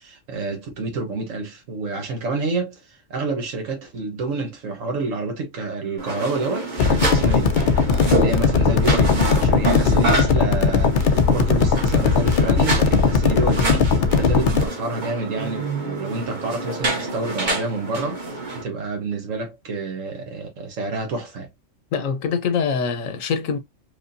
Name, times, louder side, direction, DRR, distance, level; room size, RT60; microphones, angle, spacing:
voice 1, 0.0-7.5 7.8-21.5, right 3 dB, 75° right, 1.5 m, -28 dB
sound 1, 6.0-18.6, right 2 dB, 40° right, 1.4 m, -27 dB
sound 2, 6.8-14.7, left 5 dB, 55° left, 0.6 m, -18 dB
voice 2, 21.9-23.6, left 6 dB, 80° left, 1.2 m, -24 dB
4.9 x 2.3 x 2.6 m
omnidirectional pair, 1.3 m